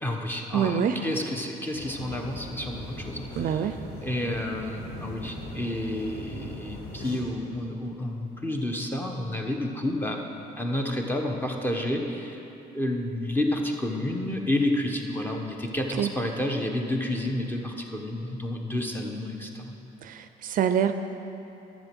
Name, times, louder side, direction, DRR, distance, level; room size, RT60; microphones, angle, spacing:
voice 1, 0.0-3.6 4.0-10.2 10.6-12.4 12.7-19.7, left 1 dB, 10° left, 2 dB, 1.2 m, -30 dB
voice 2, 0.5-1.0 3.4-3.8 16.0-16.1 20.0-20.9, right 8 dB, 55° right, 9 dB, 0.5 m, -25 dB
sound 1, 1.7-7.2, equal, 65° left, 2.5 m, -39 dB
12.0 x 7.4 x 6.1 m, 2.9 s
cardioid pair, 110°, 17 cm